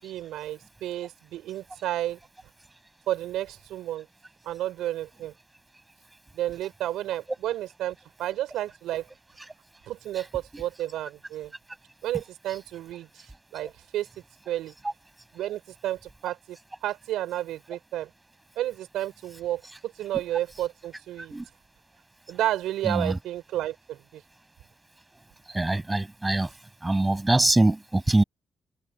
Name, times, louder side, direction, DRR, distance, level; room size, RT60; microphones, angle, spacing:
voice 1, 0.0-2.2 3.1-4.1 4.4-5.3 6.3-9.1 9.9-11.5 12.0-13.3 13.5-14.1 14.4-14.7 15.3-16.6 16.8-18.1 18.5-21.3 22.3-24.2, right 13 dB, 80° right, 5.1 m, -31 dB
voice 2, 22.9-23.2 25.5-26.5 26.8-28.2, right 2 dB, 20° right, 6.8 m, -23 dB
supercardioid pair, 50°, 0 cm